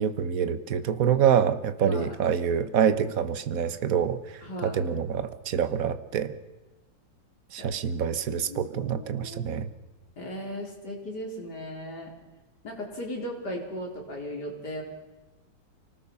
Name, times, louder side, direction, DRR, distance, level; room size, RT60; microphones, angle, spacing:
voice 1, 0.0-6.3 7.5-9.7, right 8 dB, 55° right, 12 dB, 1.5 m, -26 dB
voice 2, 1.8-2.1 4.4-4.8 7.6-7.7 8.3-9.4 10.2-12.1 12.6-14.8, equal, 60° left, 0 dB, 4.9 m, -37 dB
25.5 x 18.5 x 5.5 m, 1.1 s
omnidirectional pair, 2.0 m